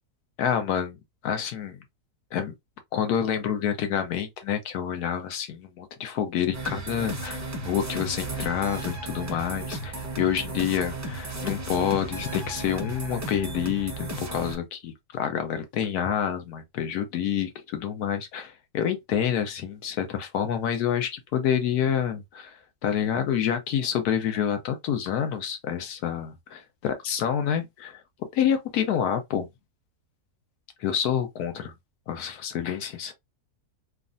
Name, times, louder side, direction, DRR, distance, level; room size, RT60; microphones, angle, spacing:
voice 1, 0.4-1.0 1.2-1.8 2.3-2.5 2.9-28.0 28.3-29.5 30.8-31.7 32.1-33.1, left 9 dB, 75° left, 1.2 m, -28 dB
sound 1, 6.5-14.5, right 2 dB, 25° right, 0.3 m, -34 dB
3.1 x 2.4 x 2.5 m
omnidirectional pair, 1.7 m